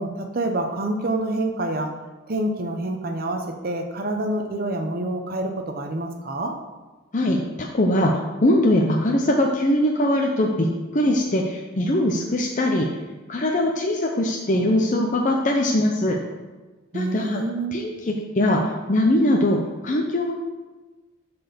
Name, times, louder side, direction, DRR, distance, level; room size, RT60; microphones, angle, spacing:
voice 1, 0.0-1.9 2.3-6.6 16.9-17.8, right 1 dB, 45° right, 4 dB, 0.7 m, -27 dB
voice 2, 7.1-8.1 8.4-12.9 13.3-16.2 16.9-17.4 17.7-18.6 18.9-20.3, left 1 dB, 40° left, 0 dB, 0.6 m, -21 dB
8.0 x 4.3 x 6.7 m, 1.3 s
head